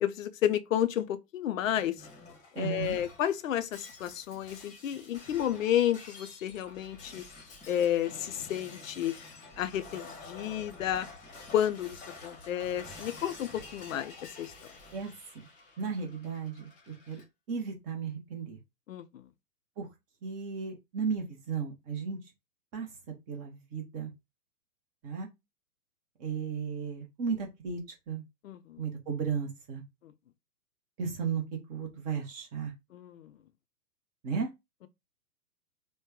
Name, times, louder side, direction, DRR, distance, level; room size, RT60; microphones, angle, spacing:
voice 1, 0.0-2.0 2.5-7.2 7.7-9.1 9.6-11.1 11.5-14.5 18.9-19.2 28.4-28.8 30.0-30.1 32.9-33.3, left 11 dB, 55° left, 0.6 m, -31 dB
Shatter, 1.6-17.2, left 3 dB, 15° left, 1.0 m, -49 dB
voice 2, 2.5-3.0 14.9-15.1 15.3-15.5 15.8-17.2 17.5-18.6 19.8-19.9 20.2-22.2 22.7-22.9 23.3-24.1 25.0-25.3 26.2-27.8 28.1-28.2 28.8-29.8 31.0-31.4 31.7-32.7 34.2-34.5, right 6 dB, 15° right, 0.7 m, -34 dB
3.1 x 2.1 x 3.5 m
figure-of-eight pair, 115°, 47 cm